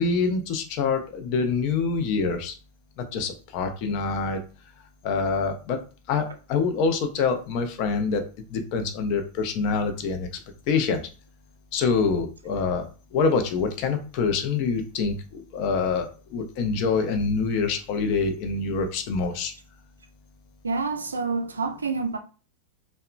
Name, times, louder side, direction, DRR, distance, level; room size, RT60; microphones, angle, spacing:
voice 1, 0.0-2.5 3.0-4.4 5.0-5.8 6.1-8.2 8.5-10.3 10.7-11.0 11.7-19.5, left 4 dB, 45° left, 0.5 m, -25 dB
voice 2, 20.6-22.2, right 4 dB, 75° right, 0.3 m, -27 dB
2.8 x 2.1 x 2.4 m
figure-of-eight pair, 90°, 0 cm